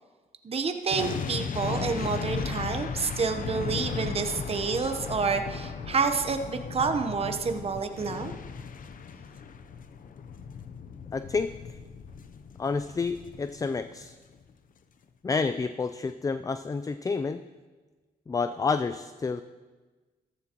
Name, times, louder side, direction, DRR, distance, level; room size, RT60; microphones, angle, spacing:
voice 1, 0.4-8.3, right 5 dB, 40° right, 7 dB, 0.9 m, -29 dB
sound 1, 0.9-14.1 14.3-14.5, left 6 dB, 60° left, 0.7 m, -36 dB
voice 2, 11.1-11.5 12.6-14.1 15.2-17.4 18.3-19.4, left 4 dB, 20° left, 11 dB, 0.4 m, -29 dB
14.0 x 13.5 x 3.0 m, 1.3 s
cardioid pair, 80°, 16 cm